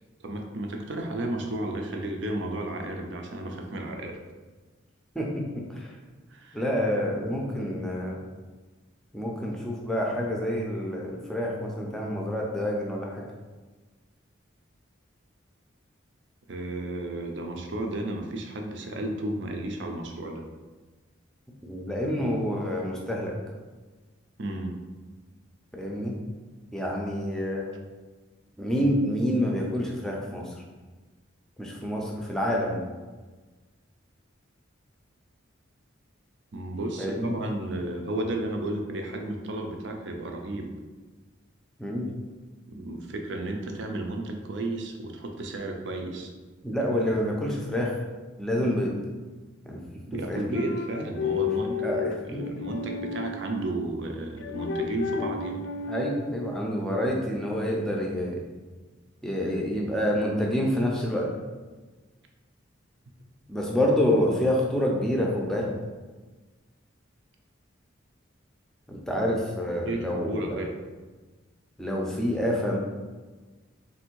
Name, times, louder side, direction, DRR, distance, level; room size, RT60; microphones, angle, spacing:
voice 1, 0.2-4.2 6.3-6.6 16.5-20.5 24.4-24.8 36.5-40.7 42.7-46.3 50.1-52.0 52.2-55.6 69.9-70.7, right 1 dB, 65° right, 3 dB, 0.5 m, -33 dB
voice 2, 5.1-6.0 6.5-8.2 9.1-13.2 21.6-23.3 25.7-26.2 26.7-27.7 28.6-30.6 31.6-32.8 37.0-37.3 41.8-42.1 46.6-48.0 48.4-48.9 49.7-49.8 50.1-50.4 51.8-52.4 55.9-58.4 59.2-61.3 63.5-65.7 68.9-70.6 71.8-72.8, equal, 5° left, -2 dB, 0.5 m, -27 dB
sound 1, 50.5-53.7 54.4-56.7, left 5 dB, 65° left, 0.3 m, -32 dB
3.4 x 2.6 x 4.5 m, 1.3 s
head